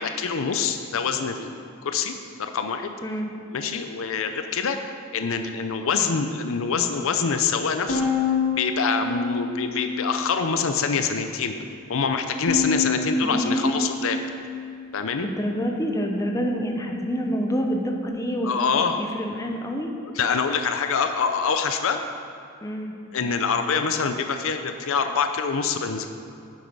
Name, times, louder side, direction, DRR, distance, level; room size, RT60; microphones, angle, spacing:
voice 1, 0.0-1.6 1.8-2.1 2.4-2.9 3.5-4.8 5.1-8.1 8.6-11.5 11.9-14.2 14.9-15.3 18.4-19.0 20.2-22.0 23.1-26.1, left 5 dB, 65° left, 7 dB, 0.6 m, -25 dB
Bowed string instrument, 7.9-10.3 10.7-11.5 12.5-15.0, left 4 dB, 85° left, 2.2 m, -28 dB
voice 2, 13.2-13.8 15.2-18.6 19.0-19.9 22.6-22.9, equal, 15° left, 2 dB, 0.8 m, -27 dB
9.2 x 7.8 x 5.4 m, 2.5 s
head